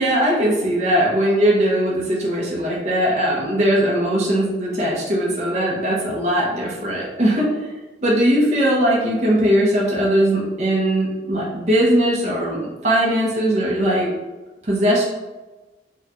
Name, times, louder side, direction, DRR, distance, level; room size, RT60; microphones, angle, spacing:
voice 1, 0.0-7.5 8.0-14.1 14.6-15.1, right 1 dB, 40° right, -4 dB, 0.6 m, -19 dB
3.5 x 2.2 x 2.8 m, 1.2 s
head